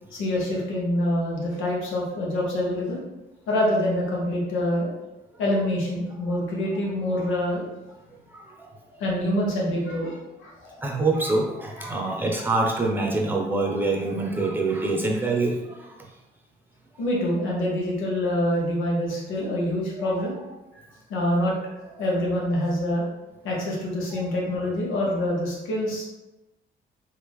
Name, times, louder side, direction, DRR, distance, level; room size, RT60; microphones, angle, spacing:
voice 1, 0.1-3.0 3.5-4.9 5.4-7.7 9.0-10.8 11.8-12.1 17.0-20.4 21.1-21.5 22.0-23.0 23.4-26.0, left 1 dB, 90° left, -3 dB, 1.0 m, -26 dB
voice 2, 8.3-9.0 10.8-16.0, right 3 dB, 10° right, -1 dB, 0.7 m, -25 dB
3.3 x 2.4 x 3.5 m, 1.0 s
cardioid pair, 90°, 20 cm